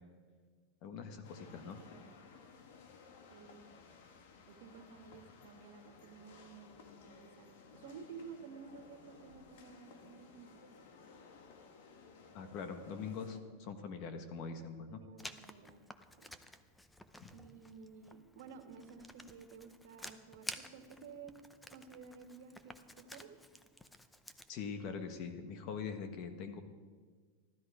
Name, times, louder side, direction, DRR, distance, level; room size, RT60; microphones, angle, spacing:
voice 1, 0.8-1.8 12.3-15.0 17.2-17.3 24.5-26.6, left 5 dB, 50° left, 8 dB, 1.6 m, -43 dB
sound 1, 1.2-13.4, left 5 dB, 70° left, 1.7 m, -58 dB
voice 2, 1.4-2.1 3.3-3.7 4.5-10.6 14.9-15.9 16.2-16.3 17.3-21.3 21.7-23.3, right 5 dB, 70° right, 6 dB, 1.7 m, -53 dB
Writing, 15.2-24.5, left 1 dB, 5° left, 0.7 m, -52 dB
14.5 x 12.5 x 5.0 m, 1.5 s
supercardioid pair, 135°, 0 cm